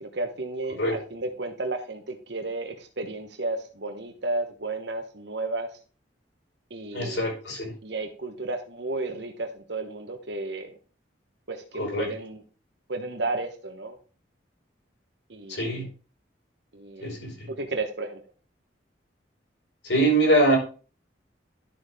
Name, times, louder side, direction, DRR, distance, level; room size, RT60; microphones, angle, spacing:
voice 1, 0.0-5.7 6.7-7.2 7.8-10.8 11.5-12.4 12.9-14.0 15.3-15.8 16.7-17.1 17.5-18.2, right 2 dB, 70° right, 4 dB, 1.2 m, -33 dB
voice 2, 6.9-7.7 11.8-12.1 15.5-15.8 17.0-17.3 19.8-20.6, right 1 dB, 85° left, 0 dB, 5.4 m, -23 dB
11.5 x 6.7 x 3.7 m, 0.36 s
head